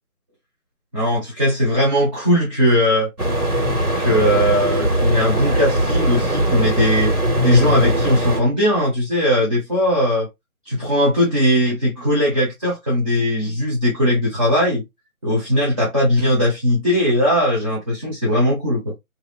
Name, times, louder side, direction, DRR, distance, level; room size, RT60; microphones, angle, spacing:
voice 1, 0.9-3.1 4.0-7.1 7.4-10.3 10.6-14.8 15.2-18.9, equal, 25° right, 1.0 m, -19 dB
sound 1, 3.2-8.4, equal, 80° right, 1.7 m, -20 dB
3.2 x 2.8 x 2.4 m
figure-of-eight pair, 160°, 44 cm